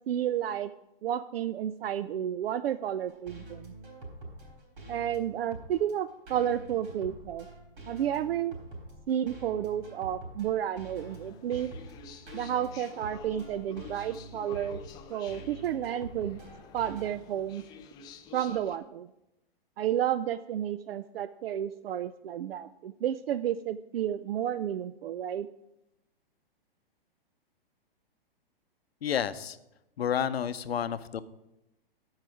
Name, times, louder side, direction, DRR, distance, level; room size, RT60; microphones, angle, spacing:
voice 1, 0.1-0.7 1.0-3.7 4.9-7.5 7.9-8.6 9.1-11.7 12.3-14.8 15.1-16.4 16.7-17.6 18.3-19.1 19.8-25.5, right 10 dB, 75° right, 13 dB, 0.4 m, -31 dB
sound 1, 3.0-17.1, right 2 dB, 60° right, 3.8 m, -46 dB
sound 2, 11.0-18.8, left 6 dB, 15° left, 0.3 m, -50 dB
voice 2, 29.0-29.6 30.0-31.2, left 8 dB, 85° left, 13 dB, 0.6 m, -30 dB
13.5 x 4.8 x 4.7 m, 0.88 s
hypercardioid pair, 125°, 30 cm